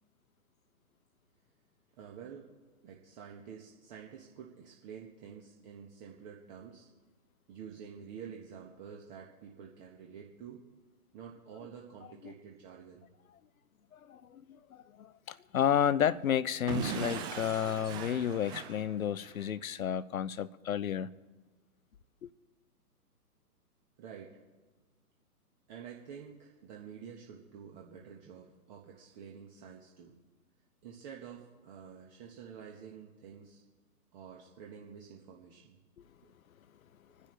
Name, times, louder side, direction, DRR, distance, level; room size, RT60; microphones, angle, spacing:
voice 1, 2.0-2.5 2.8-6.9 7.5-10.6 11.1-13.1 24.0-24.4 25.7-30.1 30.8-33.6 34.1-35.8 36.2-36.3, right 7 dB, 30° right, 1.5 m, -49 dB
voice 2, 13.9-21.1 22.2-22.3, left 9 dB, 60° left, 0.7 m, -32 dB
Explosion / Shatter, 16.7-19.4, right 7 dB, 10° right, 0.7 m, -39 dB
26.0 x 10.5 x 3.3 m
figure-of-eight pair, 125°, 47 cm